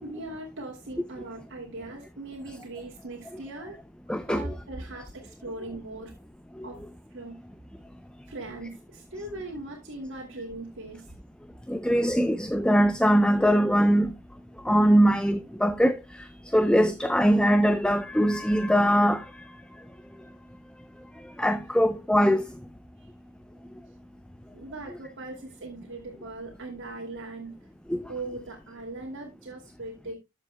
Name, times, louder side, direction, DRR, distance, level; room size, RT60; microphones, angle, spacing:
voice 1, 0.0-3.8 4.3-6.2 6.6-6.8 7.1-7.4 8.3-11.1 23.0-23.1 24.5-27.7 28.1-30.2, right 2 dB, 55° right, 2.4 m, -39 dB
voice 2, 4.1-4.5 6.6-6.7 11.7-14.1 14.6-19.4 21.4-22.5 27.9-28.0, equal, 5° left, 0.4 m, -22 dB
13.5 x 7.7 x 2.2 m
head